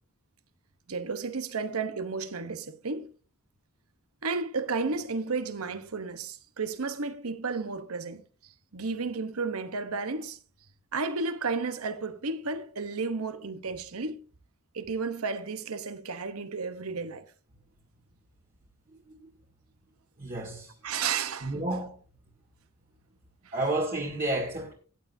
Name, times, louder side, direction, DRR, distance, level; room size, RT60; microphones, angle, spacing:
voice 1, 0.9-3.1 4.2-10.4 10.9-14.2 14.7-17.2 20.8-21.6 23.5-23.6, right 4 dB, 80° right, 1.0 m, -33 dB
voice 2, 18.9-19.3 20.2-20.7 21.4-22.0 23.5-24.7, right 2 dB, 35° right, 1.9 m, -31 dB
15.0 x 10.0 x 2.7 m
head